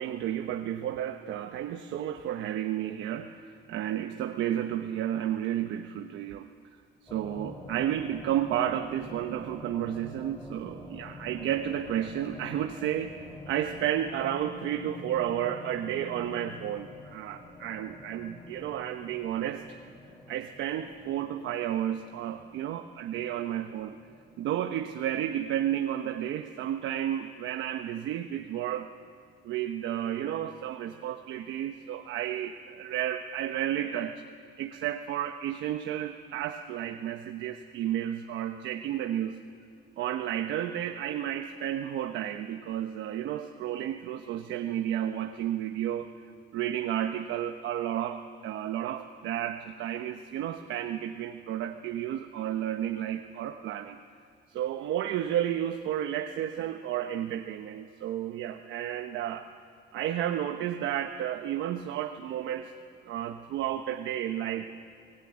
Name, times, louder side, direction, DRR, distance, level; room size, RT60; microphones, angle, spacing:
voice 1, 0.0-6.5 7.0-13.2 13.5-19.8 20.3-24.0 24.4-28.9 29.4-34.2 34.6-39.4 40.0-46.1 46.5-54.0 54.5-59.5 59.9-62.7 63.0-64.7, right 11 dB, 90° right, 6 dB, 1.1 m, -32 dB
sound 1, 7.1-25.7, left 2 dB, 15° left, 3.2 m, -47 dB
25.5 x 19.0 x 9.6 m, 2.3 s
cardioid pair, 170°, 19 cm